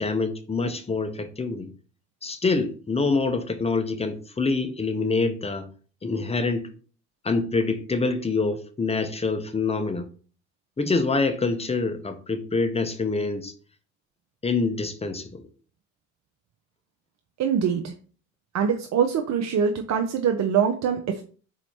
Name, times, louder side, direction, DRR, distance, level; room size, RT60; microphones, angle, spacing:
voice 1, 0.0-1.7 2.2-5.7 6.0-6.7 7.2-10.1 10.8-13.5 14.4-15.4, left 3 dB, 15° left, 9 dB, 0.8 m, -26 dB
voice 2, 17.4-17.9 18.5-21.2, right 7 dB, 40° right, 5 dB, 0.6 m, -23 dB
4.2 x 2.9 x 4.2 m, 0.40 s
hypercardioid pair, 60°, 41 cm